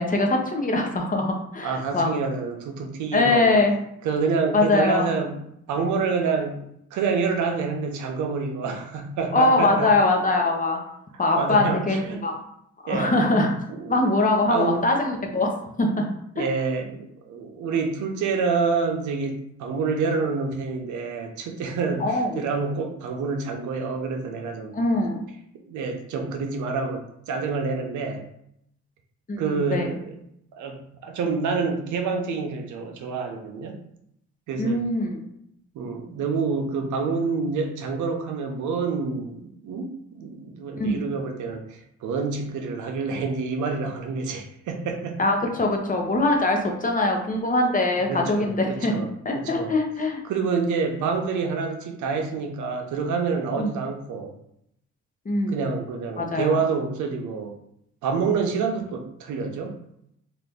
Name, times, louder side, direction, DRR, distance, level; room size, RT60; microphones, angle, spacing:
voice 1, 0.0-2.1 3.1-3.8 4.5-5.1 9.3-10.8 11.2-12.4 12.8-13.5 13.9-15.5 15.8-16.1 16.4-16.5 22.0-22.4 24.7-25.2 29.3-30.0 34.6-35.2 40.7-41.1 45.2-49.0 49.2-50.2 53.6-53.7 55.2-55.6 56.2-56.6, left 2 dB, 25° left, 2 dB, 0.7 m, -22 dB
voice 2, 1.6-3.6 4.0-5.4 5.7-9.9 11.3-12.2 12.9-13.1 13.7-14.0 14.5-14.8 16.4-24.8 25.7-28.3 29.4-30.1 30.5-33.8 34.5-34.8 35.7-45.2 48.1-49.1 49.3-49.7 50.3-54.3 55.5-57.5 58.0-59.8, right 4 dB, 75° right, 4 dB, 0.7 m, -27 dB
2.9 x 2.5 x 3.5 m, 0.75 s
cardioid pair, 90°, 30 cm